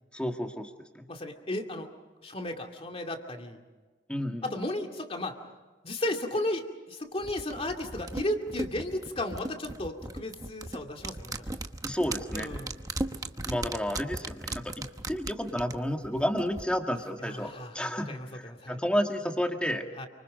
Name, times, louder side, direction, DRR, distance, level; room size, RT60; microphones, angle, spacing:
voice 1, 0.1-1.1 4.1-4.6 11.8-12.5 13.5-19.9, equal, 5° left, 4 dB, 1.9 m, -31 dB
voice 2, 1.1-1.9 2.2-3.6 4.4-5.4 5.8-11.5 12.3-12.7 17.2-18.8 20.0-20.1, left 1 dB, 30° left, 4 dB, 2.5 m, -34 dB
sound 1, 7.2-16.6 16.9-17.0, right 2 dB, 20° right, 1.0 m, -37 dB
28.5 x 25.5 x 5.3 m, 1.3 s
head